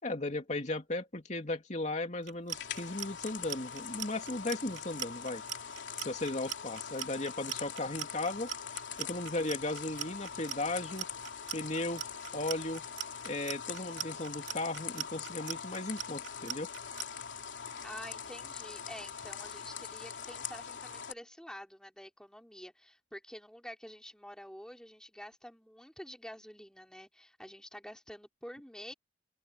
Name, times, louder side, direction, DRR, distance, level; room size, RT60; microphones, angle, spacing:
voice 1, 0.0-5.4 6.0-8.5 9.0-11.1 11.5-12.0 12.3-12.8 13.2-16.7, left 2 dB, 40° left, 2.8 m, -36 dB
Clock, 2.2-17.1, right 11 dB, 75° right, 2.2 m, -40 dB
sound 1, 2.5-21.1, left 7 dB, 75° left, 2.9 m, -43 dB
voice 2, 17.8-28.9, equal, 5° left, 3.9 m, -48 dB
open air
head